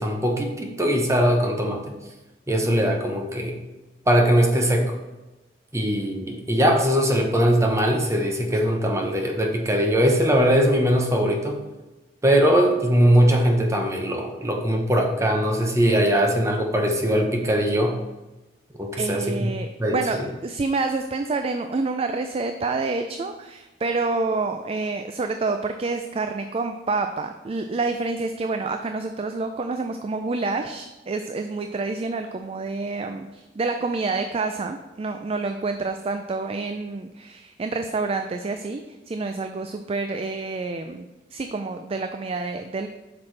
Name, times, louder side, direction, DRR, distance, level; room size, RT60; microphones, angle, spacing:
voice 1, 0.0-1.9 2.5-3.6 4.1-4.9 5.7-11.6 12.2-18.0 18.8-19.3 19.8-20.3, equal, 15° right, 1 dB, 0.9 m, -21 dB
voice 2, 19.0-38.8 39.1-42.9, right 3 dB, 35° right, 7 dB, 0.4 m, -28 dB
8.5 x 6.0 x 3.3 m, 1.1 s
head